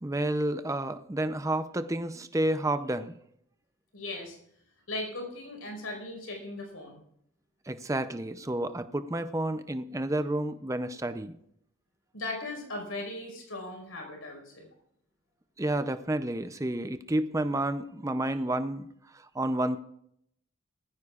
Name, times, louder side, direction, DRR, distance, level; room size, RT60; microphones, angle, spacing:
voice 1, 0.0-3.1 7.7-11.4 15.6-18.9 19.3-19.8, right 1 dB, 15° right, 11 dB, 0.5 m, -30 dB
voice 2, 3.9-4.4 4.9-7.0 12.1-14.7, left 2 dB, 85° left, 2 dB, 4.9 m, -38 dB
20.0 x 14.5 x 2.4 m, 0.72 s
head